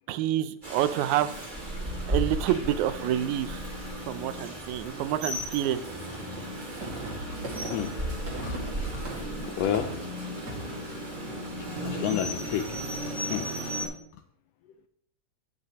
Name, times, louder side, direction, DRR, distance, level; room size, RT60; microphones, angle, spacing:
voice 1, 0.1-1.3 2.1-3.6 4.1-5.8, right 12 dB, 90° right, 13 dB, 2.0 m, -28 dB
Rain, 0.6-13.9, equal, 20° right, 2.0 m, -35 dB
sound 1, 5.0-12.9, right 1 dB, 40° right, 2.4 m, -40 dB
voice 2, 8.4-9.0 9.4-9.9 11.8-12.9 13.3-13.6, left 10 dB, 80° left, 9 dB, 1.5 m, -31 dB
16.0 x 5.6 x 3.0 m, 0.68 s
omnidirectional pair, 3.3 m